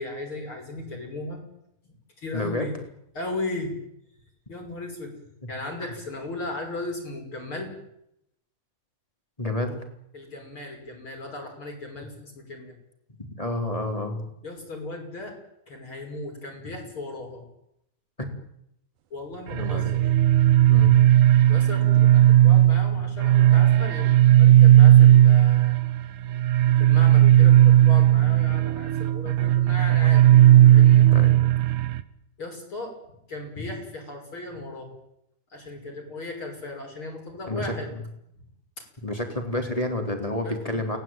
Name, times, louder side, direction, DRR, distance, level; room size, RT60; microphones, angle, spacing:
voice 1, 0.0-1.4 2.2-2.7 3.1-3.8 4.5-5.1 5.5-7.7 10.1-12.7 14.4-15.4 15.7-17.4 19.1-20.1 21.5-25.8 26.8-30.3 30.7-31.1 32.4-33.0 33.3-35.0 35.5-37.9 40.4-41.0, left 2 dB, 40° left, 2 dB, 6.7 m, -36 dB
voice 2, 2.3-2.7 5.8-5.9 9.4-9.8 13.2-14.2 18.2-18.3 19.5-19.9 20.7-20.9 22.9-23.0 31.1-31.3 33.6-33.7 37.5-37.7 39.0-41.0, left 1 dB, 10° left, 4 dB, 3.9 m, -29 dB
sound 1, 19.5-32.0, right 13 dB, 80° right, 2.8 m, -16 dB
29.5 x 20.5 x 9.3 m, 0.80 s
omnidirectional pair, 3.7 m